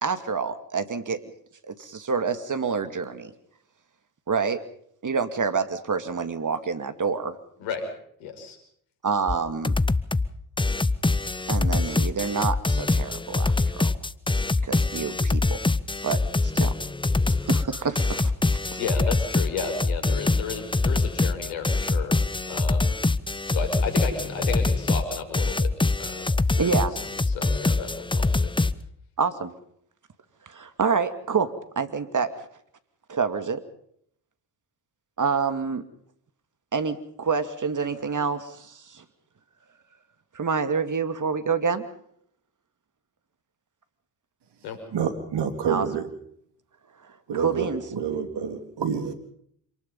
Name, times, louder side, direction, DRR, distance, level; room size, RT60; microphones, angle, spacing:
voice 1, 0.0-1.2 1.7-3.3 4.3-4.6 5.0-7.4 9.0-9.8 11.5-13.9 14.6-15.6 16.0-16.7 17.3-18.3 18.7-18.8 26.6-26.9 29.2-29.5 30.5-31.5 31.8-32.5 33.1-33.6 35.2-35.8 36.7-39.0 40.3-41.9 45.7-45.9 47.3-47.8, right 5 dB, 40° right, 10 dB, 2.4 m, -27 dB
voice 2, 8.2-8.6 18.8-22.2 22.5-22.9 23.5-26.7 27.3-28.5 44.6-44.8, left 5 dB, 80° left, 6 dB, 5.3 m, -33 dB
sound 1, 9.3-9.4 9.6-10.3 10.6-28.7, left 3 dB, 10° left, 0.9 m, -24 dB
voice 3, 44.9-46.1 47.3-49.1, right 7 dB, 55° right, 8 dB, 3.4 m, -28 dB
27.0 x 19.5 x 5.5 m, 0.68 s
hypercardioid pair, 45°, 48 cm